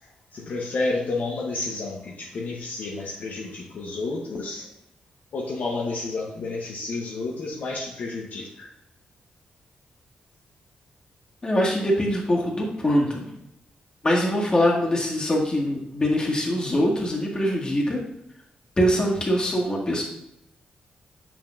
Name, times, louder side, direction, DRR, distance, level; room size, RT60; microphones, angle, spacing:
voice 1, 0.0-4.7 5.3-8.7, left 3 dB, 70° left, -2 dB, 1.0 m, -30 dB
voice 2, 11.4-13.3 14.0-18.0 18.8-20.0, equal, 30° left, -2 dB, 1.9 m, -23 dB
6.8 x 6.0 x 2.6 m, 0.82 s
cardioid pair, 70°, 3 cm